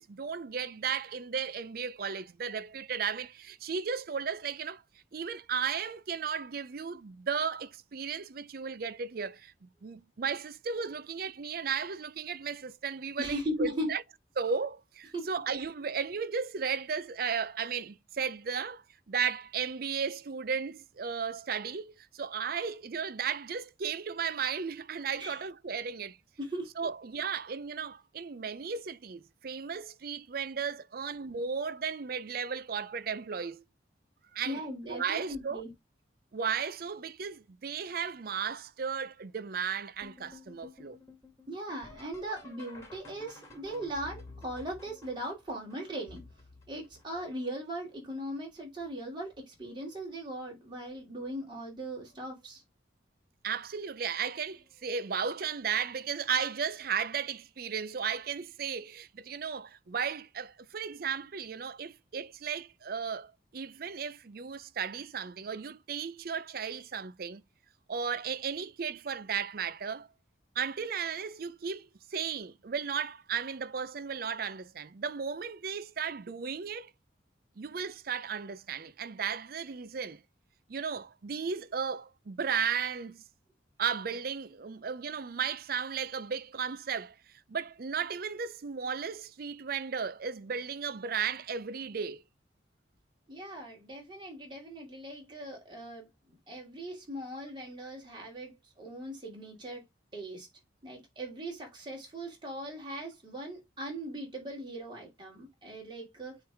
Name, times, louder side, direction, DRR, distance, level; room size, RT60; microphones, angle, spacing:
voice 1, 0.0-4.8 5.1-14.0 14.4-26.2 26.8-33.6 34.3-35.7 36.3-41.0 53.4-67.4 67.9-70.1 70.6-76.9 77.6-80.2 80.7-83.2 83.8-87.2 87.5-92.2, right 6 dB, 50° right, 0.5 m, -35 dB
voice 2, 13.2-13.9 15.1-15.3 25.2-25.4 26.4-26.7 34.4-35.7 41.5-46.2 46.7-52.6 93.3-96.1 96.5-99.8 100.1-100.5 100.8-106.4, right 1 dB, 25° right, 2.6 m, -39 dB
sound 1, 40.0-47.7 48.4-48.9 49.3-50.0 51.2-51.3 52.1-52.4 54.6-54.7 57.0-57.1, left 2 dB, 15° left, 2.1 m, -53 dB
9.3 x 3.2 x 3.5 m
head